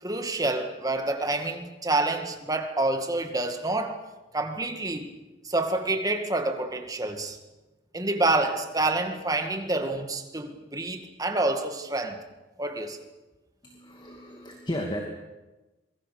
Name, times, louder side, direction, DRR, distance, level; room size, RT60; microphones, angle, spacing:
voice 1, 0.0-4.0 4.3-5.1 5.4-7.4 7.9-12.2 12.6-13.0, right 2 dB, 20° right, 2.1 m, -28 dB
voice 2, 13.6-15.0, equal, 25° left, 2.5 m, -34 dB
26.5 x 23.0 x 6.7 m
head